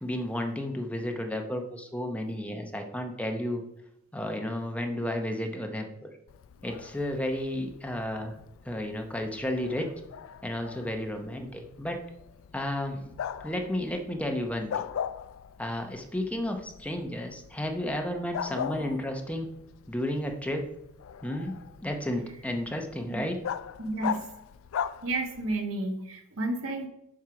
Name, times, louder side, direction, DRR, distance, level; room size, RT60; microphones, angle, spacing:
voice 1, 0.0-3.6 4.1-5.8 6.6-8.3 8.7-9.9 10.4-12.0 12.5-13.1 13.4-14.8 15.6-19.5 19.9-20.7 21.2-21.5 21.8-23.4, left 1 dB, 5° left, 4 dB, 0.8 m, -32 dB
Bark, 6.3-25.6, left 8 dB, 70° left, 0.3 m, -40 dB
voice 2, 23.8-24.3 25.0-26.9, right 2 dB, 70° right, 4 dB, 1.4 m, -31 dB
7.5 x 5.5 x 4.8 m, 0.82 s
head